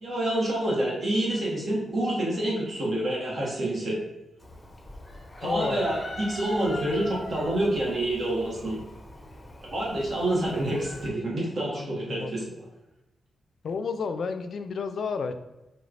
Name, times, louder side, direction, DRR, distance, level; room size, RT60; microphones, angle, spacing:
voice 1, 0.0-4.0 5.4-8.8 9.6-12.5, right 1 dB, 45° right, -4 dB, 1.3 m, -27 dB
Chicken rooster, 4.4-11.1, left 1 dB, 15° left, 0.8 m, -42 dB
voice 2, 5.4-5.9 11.7-12.3 13.6-15.3, left 5 dB, 65° left, 9 dB, 0.3 m, -31 dB
4.6 x 3.1 x 2.5 m, 0.98 s
cardioid pair, 90°, 0 cm